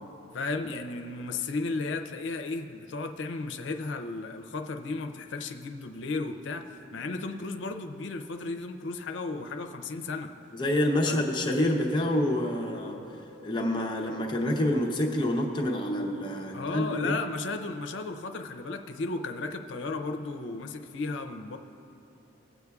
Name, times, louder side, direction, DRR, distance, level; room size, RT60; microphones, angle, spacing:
voice 1, 0.3-10.3 11.1-11.2 16.5-21.6, left 3 dB, 75° left, 6 dB, 0.5 m, -34 dB
voice 2, 10.5-13.0 13.4-17.2, left 1 dB, 25° left, 1 dB, 0.7 m, -27 dB
19.0 x 8.0 x 2.3 m, 2.9 s
head